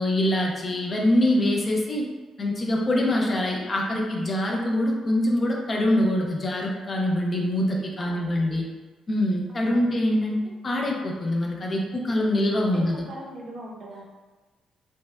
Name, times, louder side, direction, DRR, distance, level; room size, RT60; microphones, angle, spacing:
voice 1, 0.0-2.0 2.4-8.6 9.1-13.1, left 1 dB, 25° left, -1 dB, 0.4 m, -24 dB
voice 2, 8.0-8.6 9.6-9.9 12.7-12.8 13.1-14.1, right 1 dB, 45° right, -2 dB, 0.6 m, -41 dB
5.2 x 2.1 x 2.3 m, 1.3 s
cardioid pair, 160°, 0 cm